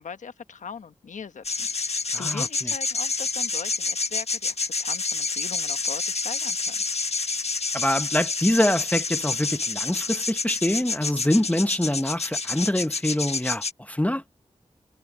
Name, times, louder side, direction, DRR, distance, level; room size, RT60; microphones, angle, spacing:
voice 1, 0.0-6.8, left 6 dB, 85° left, 1.1 m, -40 dB
sound 1, 1.4-13.7, left 4 dB, 55° left, 1.3 m, -28 dB
voice 2, 2.1-2.7 7.7-14.2, left 1 dB, 10° left, 0.9 m, -25 dB
cardioid pair, 40°, 13 cm